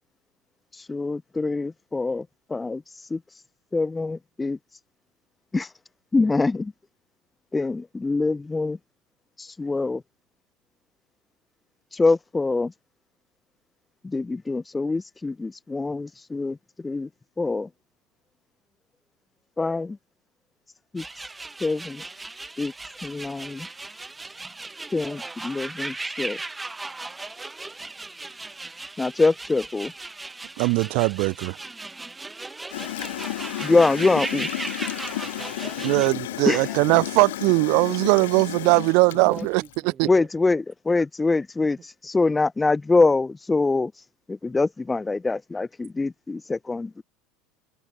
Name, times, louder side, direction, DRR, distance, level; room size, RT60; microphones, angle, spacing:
voice 1, 0.7-3.4 3.7-4.6 5.5-5.7 6.1-6.7 7.5-8.8 9.4-10.0 11.9-12.7 14.0-16.6 16.8-17.1 17.4-17.7 19.6-20.0 20.9-21.2 21.6-22.0 22.6-22.7 23.0-23.7 24.9-26.4 29.0-29.9 33.6-34.5 36.4-36.8 40.0-47.0, left 3 dB, 15° left, 0.6 m, -24 dB
sound 1, 21.0-36.1, right 3 dB, 15° right, 3.8 m, -37 dB
voice 2, 30.6-31.6 35.8-39.6 40.0-40.1, right 34 dB, 55° right, 1.2 m, -20 dB
Gurgling / Toilet flush, 32.7-39.8, left 15 dB, 65° left, 2.2 m, -32 dB
voice 3, 35.2-36.9 37.7-37.8 39.3-40.3 41.8-41.9, right 8 dB, 30° right, 3.8 m, -44 dB
open air
figure-of-eight pair, 70°, 0 cm